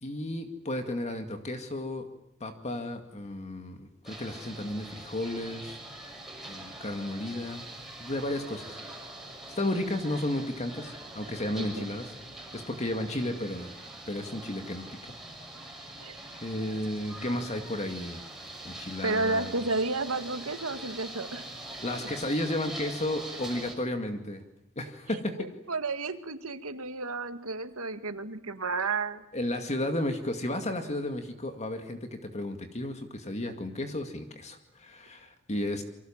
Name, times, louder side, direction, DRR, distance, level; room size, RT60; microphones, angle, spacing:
voice 1, 0.0-2.1 2.4-5.8 6.4-7.6 8.0-8.8 9.6-12.1 12.5-13.7 14.1-14.8 15.8-16.1 16.4-18.2 18.6-19.5 21.8-24.4 24.8-25.5 29.3-35.8, left 1 dB, 30° left, 6 dB, 2.2 m, -33 dB
sound 1, 4.0-23.7, right 1 dB, ahead, 6.0 m, -43 dB
voice 2, 19.0-21.5 25.4-29.2, right 3 dB, 70° right, 9 dB, 2.1 m, -32 dB
28.5 x 24.5 x 7.4 m, 0.81 s
head